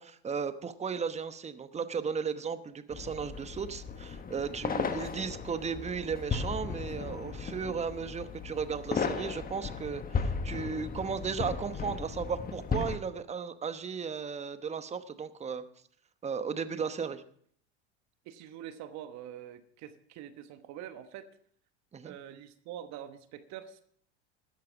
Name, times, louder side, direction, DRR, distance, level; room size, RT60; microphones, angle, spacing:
voice 1, 0.0-15.6 16.2-17.2 21.9-22.1, right 6 dB, 20° right, 11 dB, 1.0 m, -35 dB
sound 1, 2.9-13.0, left 5 dB, 25° left, 1.3 m, -36 dB
voice 2, 16.7-17.2 18.2-21.3 22.0-23.8, right 10 dB, 55° right, 10 dB, 1.1 m, -45 dB
13.0 x 9.2 x 6.0 m, 0.63 s
hypercardioid pair, 95°, 34 cm